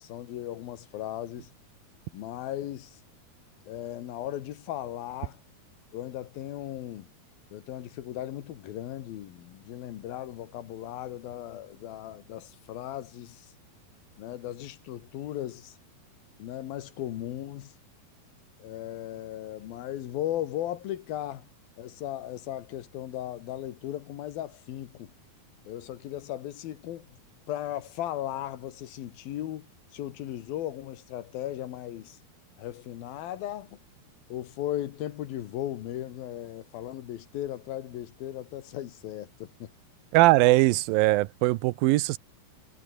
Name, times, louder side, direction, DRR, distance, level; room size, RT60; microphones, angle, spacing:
voice 1, 0.0-1.5 2.1-3.0 3.7-5.4 5.9-7.1 7.5-13.5 14.2-15.7 16.4-17.7 18.6-21.5 21.8-25.1 25.6-27.1 27.5-29.7 29.9-32.2 32.6-33.8 34.3-39.7, left 12 dB, 75° left, 3.2 m, -37 dB
voice 2, 40.1-42.2, right 19 dB, 80° right, 2.4 m, -21 dB
omnidirectional pair, 4.4 m